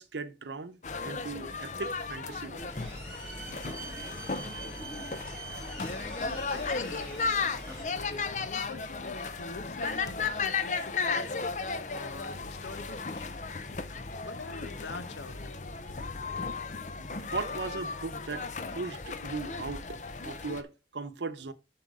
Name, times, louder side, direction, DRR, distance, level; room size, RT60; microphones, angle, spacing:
voice 1, 0.0-2.9 17.0-18.4 18.7-21.5, right 4 dB, 85° right, 0.8 m, -38 dB
sound 1, 0.8-20.6, left 4 dB, 45° left, 0.6 m, -35 dB
sound 2, 2.6-7.8, right 2 dB, 5° left, 3.1 m, -43 dB
voice 2, 5.6-5.9 6.5-7.3 7.9-11.3 11.8-15.9, left 3 dB, 85° left, 0.9 m, -45 dB
7.9 x 5.7 x 3.6 m
head